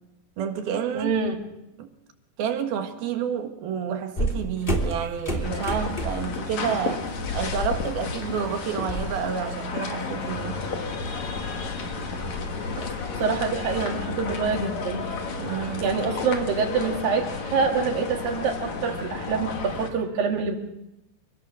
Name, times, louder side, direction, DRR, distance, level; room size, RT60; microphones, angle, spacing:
voice 1, 0.4-1.1 1.8-1.9 2.4-7.1 7.3-10.6 15.4-15.9, right 8 dB, 85° right, 3.7 m, -29 dB
voice 2, 0.9-1.4 12.8-12.9 13.2-15.1 15.8-20.5, right 5 dB, 70° right, 4.1 m, -26 dB
sound 1, 4.2-6.4 6.8-7.1 7.4-9.1, right 1 dB, 15° left, 2.8 m, -29 dB
sound 2, 5.4-19.9, left 4 dB, 50° left, 3.6 m, -32 dB
27.0 x 18.5 x 6.5 m
omnidirectional pair, 4.2 m